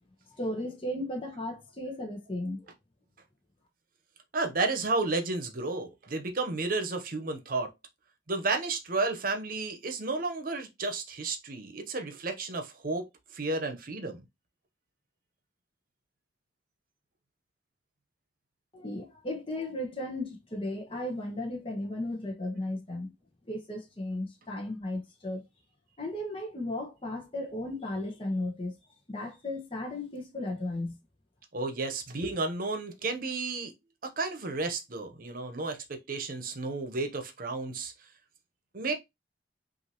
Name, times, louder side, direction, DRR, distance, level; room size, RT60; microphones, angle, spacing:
voice 1, 0.4-2.6 18.7-23.1 23.5-25.4 26.0-28.8 29.1-31.0, left 1 dB, 30° left, 1.0 m, -35 dB
voice 2, 4.3-7.7 8.3-13.1 13.3-14.2 31.5-33.7 34.0-37.9 38.7-38.9, right 3 dB, 50° right, 0.9 m, -32 dB
5.9 x 2.7 x 2.9 m
head